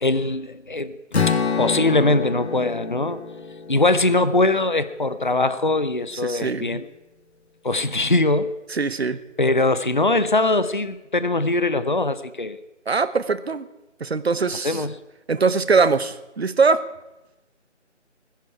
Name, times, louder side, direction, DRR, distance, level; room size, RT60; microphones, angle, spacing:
voice 1, 0.0-0.9 1.6-3.2 3.7-6.9 7.6-8.5 9.4-12.6 14.6-14.9, left 2 dB, 40° left, 14 dB, 0.5 m, -21 dB
Strum, 1.1-5.3, left 6 dB, 60° left, 1.8 m, -27 dB
voice 2, 6.2-6.8 8.7-9.2 12.9-13.7 14.0-14.8 15.3-16.8, right 4 dB, 60° right, 15 dB, 0.8 m, -22 dB
18.5 x 10.5 x 4.7 m, 1.0 s
figure-of-eight pair, 175°, 37 cm